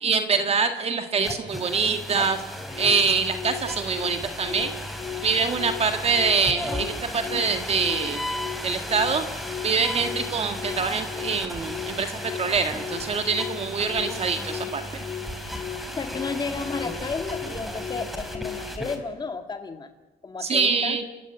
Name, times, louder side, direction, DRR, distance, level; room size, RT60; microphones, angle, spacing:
voice 1, 0.0-2.4 2.8-4.7 5.2-8.2 8.6-9.3 9.6-14.8 20.4-21.0, right 5 dB, 35° right, 7 dB, 1.8 m, -24 dB
sound 1, 1.2-19.0, left 1 dB, ahead, 3.8 m, -35 dB
sound 2, 2.7-18.9, left 6 dB, 45° left, 6.3 m, -37 dB
voice 2, 16.0-19.9 20.2-21.0, left 4 dB, 25° left, 6 dB, 1.8 m, -32 dB
29.5 x 16.0 x 9.1 m, 1.1 s
cardioid pair, 110°, 17 cm